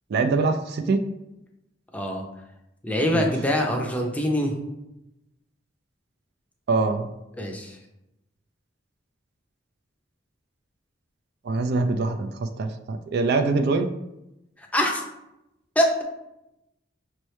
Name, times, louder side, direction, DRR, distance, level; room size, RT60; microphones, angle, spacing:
voice 1, 0.1-1.0 3.1-3.3 6.7-7.1 11.5-13.9, right 3 dB, 55° right, 7 dB, 0.3 m, -24 dB
voice 2, 2.8-4.5 7.4-7.8 14.6-15.0 15.8-16.0, equal, 10° left, 1 dB, 0.6 m, -24 dB
5.4 x 3.1 x 3.1 m, 0.89 s
head